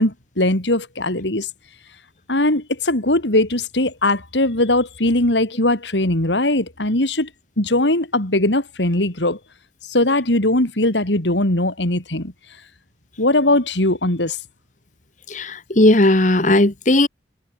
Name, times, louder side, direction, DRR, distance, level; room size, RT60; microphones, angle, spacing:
voice 1, 0.0-1.5 2.3-7.3 7.6-9.4 9.9-12.3 13.2-14.4, left 1 dB, 85° left, 4.0 m, -20 dB
voice 2, 15.3-17.1, left 1 dB, 45° left, 1.7 m, -16 dB
head